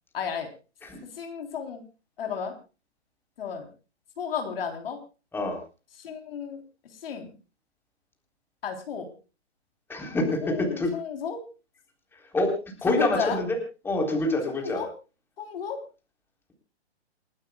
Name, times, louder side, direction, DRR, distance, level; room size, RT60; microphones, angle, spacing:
voice 1, 0.1-0.5 1.2-1.8 2.2-2.5 3.4-3.7 4.2-5.0 6.0-6.6 7.0-7.3 8.6-9.1 10.4-11.4 12.9-13.4 14.5-14.9 15.4-15.8, left 7 dB, 55° left, 5 dB, 3.6 m, -33 dB
voice 2, 9.9-10.9 12.3-13.6 13.8-14.8, left 2 dB, 5° left, 3 dB, 3.7 m, -26 dB
28.5 x 12.0 x 2.3 m, 0.33 s
hypercardioid pair, 145°, 34 cm